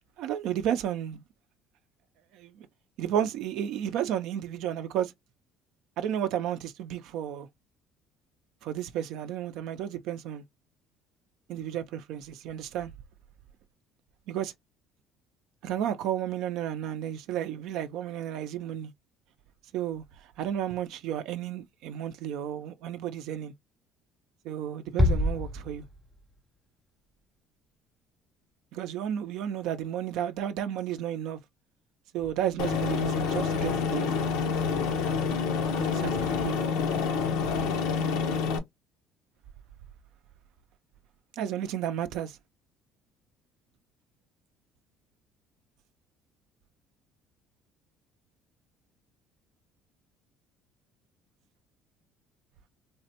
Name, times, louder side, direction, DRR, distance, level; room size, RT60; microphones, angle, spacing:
voice 1, 0.2-1.2 2.3-2.7 3.0-5.1 6.0-7.5 8.6-10.4 11.5-12.9 14.3-14.5 15.6-18.9 19.7-23.5 24.4-25.8 28.7-31.4 32.1-34.1 35.8-36.5 41.3-42.4, right 10 dB, 75° right, 0.4 m, -32 dB
Bass drum, 25.0-26.4, left 1 dB, ahead, 0.5 m, -27 dB
Aircraft, 32.6-38.6, left 5 dB, 90° left, 0.7 m, -27 dB
3.4 x 2.1 x 2.7 m
cardioid pair, 105°, 0 cm